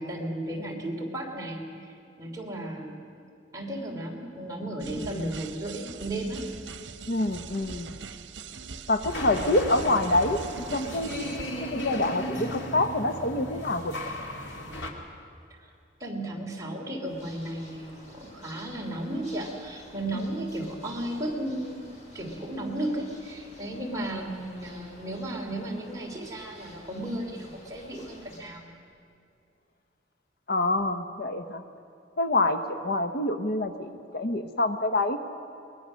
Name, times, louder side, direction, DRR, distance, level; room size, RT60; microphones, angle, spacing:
voice 1, 0.0-1.9 2.2-3.0 3.5-6.4 15.6-15.7 16.0-21.9 22.1-28.6, right 1 dB, 20° right, -2 dB, 3.2 m, -34 dB
sound 1, 4.8-11.7, right 5 dB, 85° right, 0.9 m, -42 dB
voice 2, 7.1-7.9 8.9-11.3 11.6-14.1 30.5-31.6 32.2-35.2, left 2 dB, 60° left, 8 dB, 1.0 m, -27 dB
sound 2, 9.1-14.9, equal, 85° left, 2.3 m, -35 dB
sound 3, 17.0-28.4, left 1 dB, 40° left, 5.8 m, -51 dB
22.5 x 20.0 x 6.3 m, 2.5 s
head